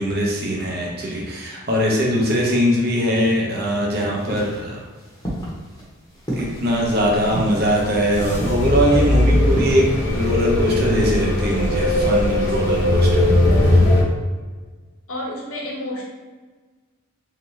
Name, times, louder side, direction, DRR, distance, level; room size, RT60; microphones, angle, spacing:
voice 1, 0.0-4.8 6.4-14.0, equal, 45° right, -2 dB, 0.8 m, -21 dB
sound 1, 4.2-11.2, right 1 dB, 20° left, 0.9 m, -32 dB
sound 2, 6.7-14.0, left 1 dB, 55° left, 1.0 m, -19 dB
voice 2, 15.1-16.1, left 1 dB, 85° left, -3 dB, 1.1 m, -30 dB
3.3 x 2.9 x 3.2 m, 1.3 s
head